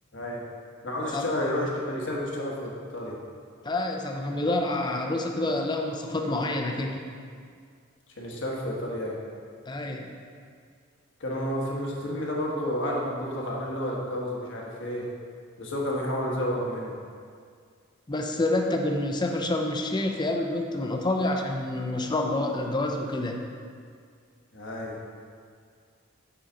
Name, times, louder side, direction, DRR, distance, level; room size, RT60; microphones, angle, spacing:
voice 1, 0.1-0.4 0.8-3.2 8.2-9.2 11.2-15.1 15.6-16.9 24.5-25.0, equal, 65° left, -2 dB, 1.2 m, -30 dB
voice 2, 3.6-7.0 9.7-10.1 18.1-23.4, left 2 dB, 20° left, 2 dB, 0.6 m, -28 dB
7.0 x 4.0 x 5.0 m, 2.1 s
head